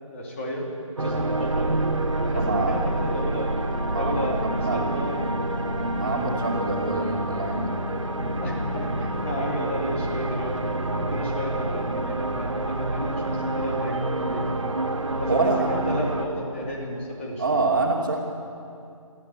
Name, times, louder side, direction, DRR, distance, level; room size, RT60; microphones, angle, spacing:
voice 1, 0.0-0.7 1.0-1.8 2.2-3.5 3.9-5.4 6.0-6.3 8.4-14.6 15.2-17.7, equal, 20° left, -2 dB, 2.8 m, -32 dB
sound 1, 1.0-16.3, right 2 dB, 60° right, 2.2 m, -27 dB
voice 2, 2.3-2.8 3.9-4.8 5.9-7.8 8.2-8.3 10.9-11.1 15.3-15.7 17.4-18.2, right 3 dB, 35° right, -1 dB, 2.7 m, -27 dB
24.5 x 14.5 x 8.4 m, 2.6 s
figure-of-eight pair, 155°, 18 cm